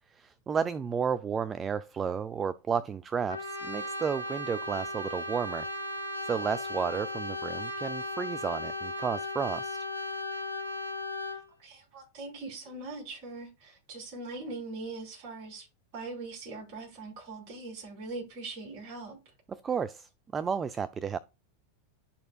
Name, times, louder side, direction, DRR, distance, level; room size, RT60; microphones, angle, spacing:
voice 1, 0.1-5.7 6.2-9.9 19.5-21.2, right 6 dB, 20° right, 0.3 m, -32 dB
Brass instrument, 3.3-11.5, left 1 dB, 80° left, 1.0 m, -36 dB
voice 2, 11.6-15.7 15.9-19.2, right 3 dB, 45° right, 4.5 m, -41 dB
11.5 x 4.3 x 2.4 m
figure-of-eight pair, 90°, 0 cm